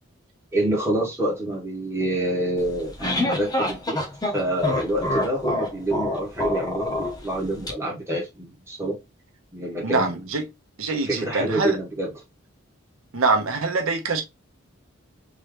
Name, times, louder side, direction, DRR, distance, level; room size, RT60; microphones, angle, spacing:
voice 1, 0.5-4.0 4.3-9.0 9.5-10.2 11.0-12.1, right 1 dB, 15° right, 1.5 m, -27 dB
sound 1, 2.6-7.7, left 1 dB, 20° left, 0.7 m, -27 dB
voice 2, 9.8-10.4 10.8-11.8 13.1-14.2, right 3 dB, 85° right, 0.8 m, -24 dB
3.7 x 3.1 x 3.3 m
head